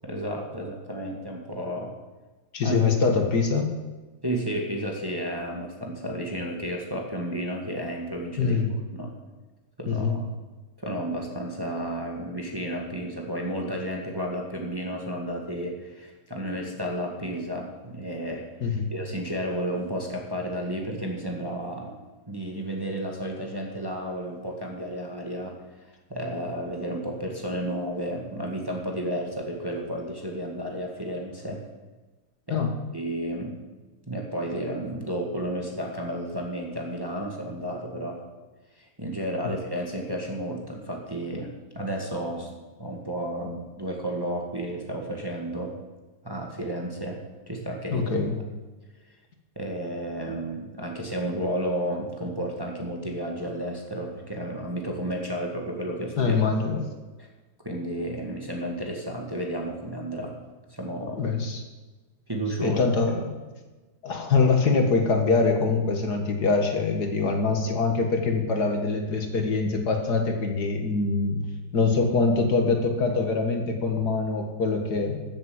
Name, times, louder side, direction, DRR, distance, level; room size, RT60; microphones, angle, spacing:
voice 1, 0.0-1.9 2.6-2.8 4.2-8.6 8.9-9.1 9.8-10.3 10.8-22.0 22.3-25.6 26.1-31.6 32.5-32.6 32.9-33.6 34.1-38.2 38.8-42.5 42.8-45.7 46.2-48.1 49.5-56.4 56.7-56.9 57.2-57.3 57.6-60.4 60.7-61.2 62.3-62.8, right 1 dB, 15° right, 0 dB, 1.7 m, -32 dB
voice 2, 2.5-3.7 8.4-8.7 9.9-10.2 18.6-18.9 32.5-32.7 47.9-48.4 56.2-56.8 61.2-61.6 62.6-63.4 64.0-71.4 71.7-75.3, left 4 dB, 60° left, 3 dB, 2.1 m, -24 dB
14.0 x 7.9 x 7.8 m, 1.2 s
omnidirectional pair, 2.0 m